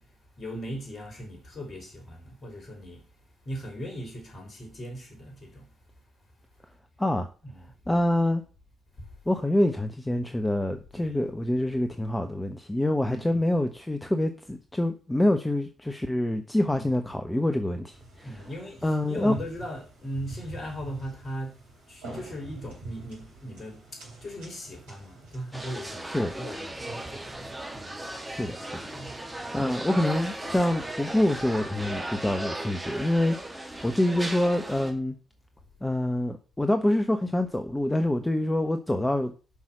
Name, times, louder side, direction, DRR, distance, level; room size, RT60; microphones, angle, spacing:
voice 1, 0.0-3.0 3.4-5.7 7.4-7.7 9.0-9.1 10.9-11.2 13.1-13.5 16.7-16.9 18.2-21.6 21.9-28.1 28.9-29.2, equal, 35° left, 4.1 m, -39 dB
voice 2, 7.9-8.4 9.3-18.4 18.8-19.3 26.0-26.3 28.2-28.8 29.5-35.2 35.8-39.3, left 1 dB, 10° left, 1.1 m, -26 dB
sound 1, 17.9-31.5, right 2 dB, 70° right, 5.4 m, -47 dB
sound 2, 25.5-34.9, right 1 dB, 10° right, 3.0 m, -36 dB
8.5 x 6.3 x 7.7 m
figure-of-eight pair, 40°, 0 cm